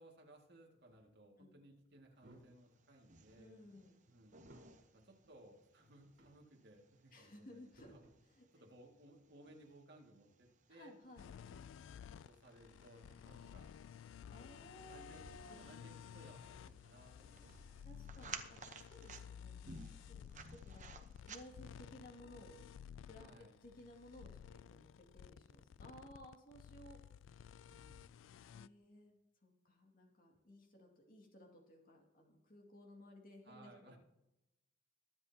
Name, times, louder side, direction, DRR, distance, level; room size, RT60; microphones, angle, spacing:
voice 1, 0.0-3.6 4.1-4.4 4.9-8.0 8.5-10.9 11.4-11.7 12.2-13.7 14.9-17.9 23.1-23.5 27.7-28.1 33.4-34.0, right 1 dB, 60° right, 0 dB, 2.1 m, -61 dB
sound 1, 0.8-1.1 1.8-2.7 3.0-4.8 5.2-5.4 5.8-6.5 7.3-8.3 10.7-11.6 13.4-13.5 14.1-18.8, right 1 dB, 75° right, 4.1 m, -66 dB
sound 2, 2.5-21.9, right 5 dB, 40° right, 0.9 m, -58 dB
voice 2, 3.4-4.0 7.1-7.9 8.3-8.5 10.7-11.3 14.3-15.6 17.8-22.7 23.0-27.0 28.3-29.2 29.4-34.0, left 1 dB, 50° left, 1 dB, 2.2 m, -58 dB
sound 3, 11.2-28.7, left 8 dB, 80° left, 0.3 m, -55 dB
22.5 x 7.8 x 2.8 m, 0.91 s
head